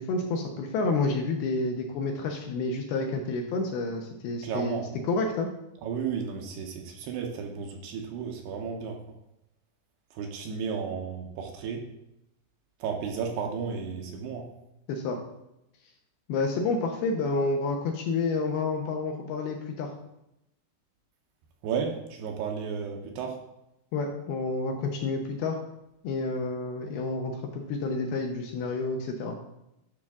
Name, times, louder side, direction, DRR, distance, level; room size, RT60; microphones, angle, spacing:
voice 1, 0.0-5.5 14.9-15.2 16.3-19.9 23.9-25.6 26.0-29.4, left 3 dB, 75° left, 2 dB, 2.5 m, -29 dB
voice 2, 4.4-4.9 5.8-9.0 10.1-11.9 12.8-14.5 21.6-23.4, right 6 dB, 75° right, 2 dB, 2.8 m, -33 dB
12.0 x 5.8 x 3.6 m, 0.86 s
omnidirectional pair, 5.2 m